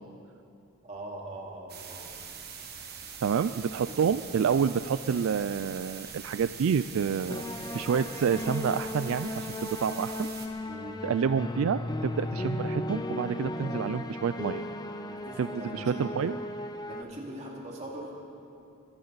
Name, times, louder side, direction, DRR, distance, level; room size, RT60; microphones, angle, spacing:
voice 1, 0.8-2.1 3.9-4.0 10.6-11.0 15.1-16.4 16.9-18.1, right 1 dB, 35° right, -2 dB, 2.5 m, -41 dB
sound 1, 1.7-10.5, right 6 dB, 50° right, 1.6 m, -43 dB
voice 2, 3.2-7.4 7.7-10.3 11.0-14.6 15.4-15.5 15.7-16.3, right 7 dB, 70° right, 13 dB, 0.3 m, -28 dB
sound 2, 7.3-17.0, left 1 dB, 20° left, 0.6 m, -36 dB
22.5 x 14.5 x 4.0 m, 2.6 s
head